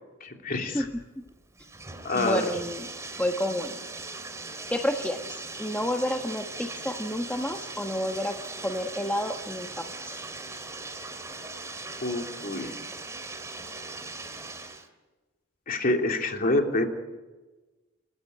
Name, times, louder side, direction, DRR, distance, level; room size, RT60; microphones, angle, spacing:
voice 1, 0.2-0.9 2.0-2.5 12.0-12.7 15.7-16.9, left 2 dB, 45° left, 3 dB, 3.1 m, -27 dB
Bathtub (filling or washing), 0.8-14.9, right 3 dB, 15° right, 2.6 m, -40 dB
voice 2, 2.1-2.9 3.2-3.8 4.7-8.4 8.6-9.8, left 1 dB, 10° left, 4 dB, 1.2 m, -30 dB
30.0 x 15.0 x 9.6 m, 1.2 s
head